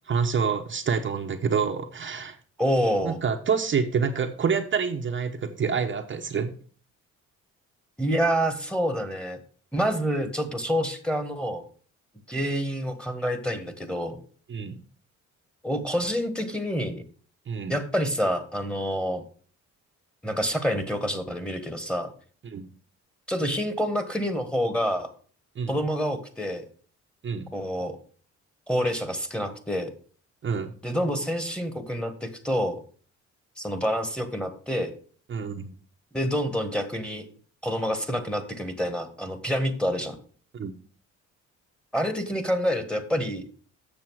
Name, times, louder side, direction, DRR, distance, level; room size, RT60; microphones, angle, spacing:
voice 1, 0.1-2.4 3.0-6.5 14.5-14.8 17.5-17.7 22.4-22.7 25.6-25.8 27.2-27.5 30.4-30.7 35.3-35.7 40.5-40.7, right 6 dB, 40° right, 3 dB, 0.8 m, -27 dB
voice 2, 2.6-3.2 8.0-9.4 9.7-11.6 12.3-14.2 15.6-17.0 17.7-19.2 20.2-22.1 23.3-25.1 25.7-26.6 27.5-28.0 28.7-29.9 30.8-32.8 33.6-34.9 36.1-37.3 37.6-40.2 41.9-43.4, equal, 5° left, 7 dB, 1.4 m, -27 dB
7.6 x 6.6 x 4.6 m, 0.43 s
cardioid pair, 90°, 30 cm